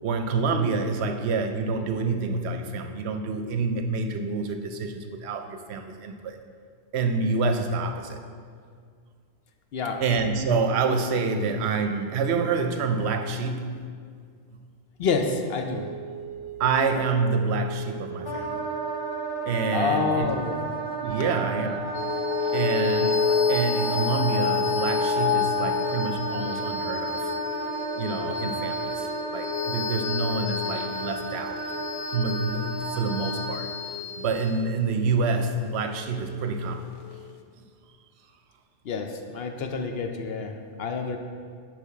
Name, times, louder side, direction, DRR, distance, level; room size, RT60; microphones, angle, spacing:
voice 1, 0.0-6.4 6.9-8.2 10.0-13.8 16.6-18.6 19.5-20.4 21.0-21.9 22.5-27.3 27.9-31.6 32.1-33.7 34.2-36.9, right 4 dB, 70° right, 6 dB, 0.8 m, -27 dB
voice 2, 15.0-15.9 19.7-20.6 38.8-41.2, left 5 dB, 65° left, 5 dB, 0.8 m, -28 dB
sound 1, 15.7-26.7, right 8 dB, 50° right, 0.4 m, -42 dB
Wind instrument woodwind instrument, 18.2-33.5, right 3 dB, 40° left, 1.1 m, -33 dB
sound 2, 22.0-36.7, left 6 dB, 90° left, 0.9 m, -29 dB
6.9 x 5.1 x 4.7 m, 2.1 s
omnidirectional pair, 1.2 m